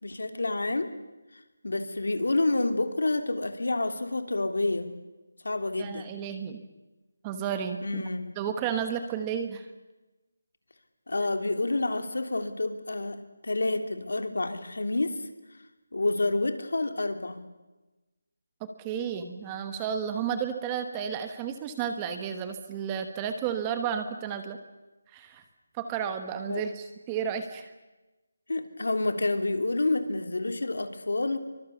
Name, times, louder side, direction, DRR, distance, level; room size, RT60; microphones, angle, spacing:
voice 1, 0.0-0.9 1.6-4.9 5.4-6.1 7.8-8.3 11.1-15.2 15.9-17.4 26.5-26.6 28.5-31.4, left 2 dB, 80° left, 8 dB, 3.2 m, -28 dB
voice 2, 5.8-6.6 7.2-8.0 8.4-9.7 18.6-24.6 25.1-25.4 25.7-27.7, right 8 dB, 10° right, 8 dB, 1.1 m, -32 dB
26.5 x 24.0 x 7.1 m, 1.1 s
figure-of-eight pair, 175°, 0 cm